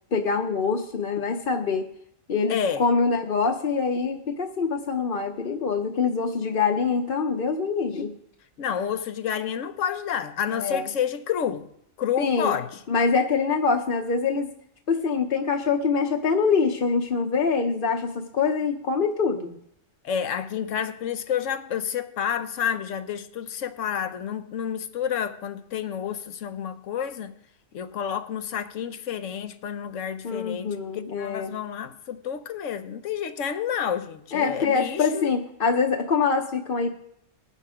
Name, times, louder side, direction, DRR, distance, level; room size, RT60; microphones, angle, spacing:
voice 1, 0.1-1.8 2.3-8.1 10.5-10.9 12.2-12.5 12.9-14.5 14.9-19.6 30.2-31.5 34.3-36.9, left 5 dB, 50° left, 0.9 m, -24 dB
voice 2, 2.5-2.8 8.6-11.6 12.0-12.8 20.0-27.3 27.7-35.3, left 8 dB, 85° left, 1.2 m, -29 dB
20.0 x 6.7 x 4.9 m
omnidirectional pair, 1.3 m